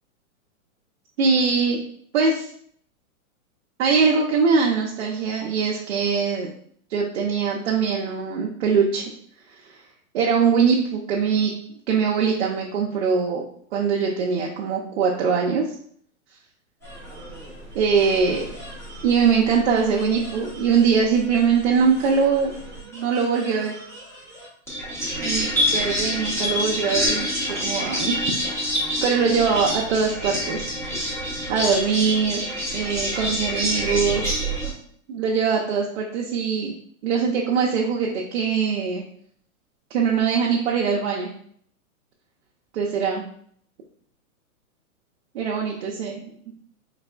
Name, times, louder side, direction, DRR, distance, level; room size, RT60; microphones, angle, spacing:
voice 1, 1.2-1.8 2.1-2.5 3.8-6.5 6.9-9.1 10.1-11.5 11.9-13.4 13.7-15.6 17.7-18.5 19.0-22.6 22.9-23.7 25.2-27.3 27.6-28.3 29.0-30.7 31.5-32.4 32.7-34.3 35.1-36.7 37.0-39.0 39.9-41.3 42.7-43.2 45.3-46.2, right 5 dB, 50° right, -2 dB, 0.6 m, -22 dB
sound 1, 16.8-34.7, equal, 5° left, 0.7 m, -28 dB
4.0 x 3.3 x 2.2 m, 0.62 s
hypercardioid pair, 145°, 43 cm